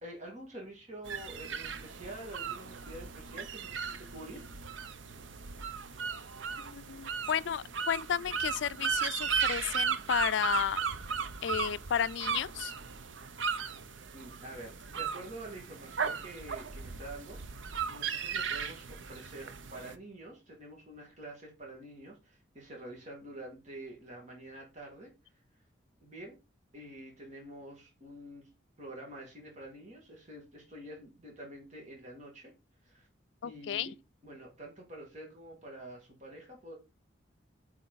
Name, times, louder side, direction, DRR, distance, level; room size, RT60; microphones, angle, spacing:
voice 1, 0.0-4.4 14.1-25.1 26.0-26.4 26.7-28.5 28.8-32.5 32.8-33.1 33.4-33.9 34.2-36.8, right 1 dB, 40° right, 2.3 m, -47 dB
sound 1, 1.0-19.9, right 6 dB, 80° right, 0.7 m, -36 dB
voice 2, 6.6-10.8 11.4-12.7 33.4-33.9, left 8 dB, 70° left, 0.4 m, -32 dB
8.6 x 4.6 x 4.0 m
head